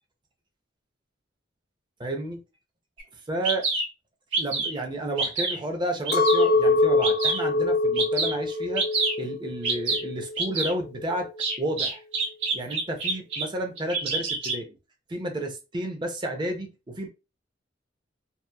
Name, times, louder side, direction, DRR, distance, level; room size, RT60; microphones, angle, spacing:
voice 1, 2.0-2.4 3.3-3.7 4.4-8.9 9.2-11.3 11.6-12.0 12.5-14.7 15.1-17.1, right 1 dB, 25° right, 0.5 m, -31 dB
Bird vocalization bird call bird song, 3.0-3.1 3.4-3.8 4.3-4.8 5.2-5.6 6.1-6.5 7.0-7.4 8.0-8.3 8.8-9.1 9.6-10.0 10.4-10.7 11.4-13.4 13.8-14.6, right 4 dB, 90° right, 1.2 m, -26 dB
Chink clink, 6.1-10.4 10.8-11.4, left 3 dB, 55° left, 0.6 m, -24 dB
2.9 x 2.4 x 2.2 m
head